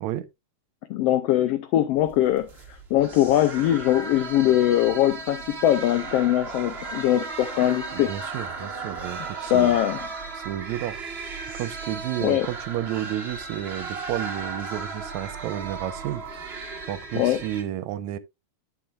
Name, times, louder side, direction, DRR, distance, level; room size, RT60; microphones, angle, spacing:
voice 1, 0.9-2.5 2.9-8.1 9.5-10.0 12.2-12.5 17.1-17.4, left 12 dB, 80° left, 1.4 m, -21 dB
sound 1, 2.0-17.6, right 4 dB, 50° right, 0.7 m, -36 dB
voice 2, 7.9-9.8 10.4-11.0 11.5-16.2 16.9-18.2, right 12 dB, 80° right, 1.9 m, -31 dB
8.9 x 8.5 x 2.4 m
omnidirectional pair, 3.4 m